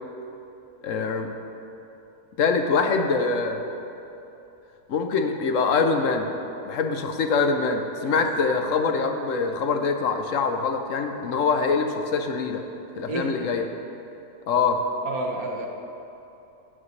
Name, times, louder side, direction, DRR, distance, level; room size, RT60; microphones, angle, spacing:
voice 1, 0.8-1.3 2.4-3.6 4.9-6.3 6.6-12.6 13.0-13.7 14.5-14.8, left 4 dB, 60° left, 5 dB, 1.0 m, -24 dB
voice 2, 8.0-8.5 13.1-13.3 15.0-15.7, right 2 dB, 60° right, 1 dB, 1.6 m, -31 dB
15.5 x 9.6 x 3.2 m, 2.9 s
omnidirectional pair, 1.7 m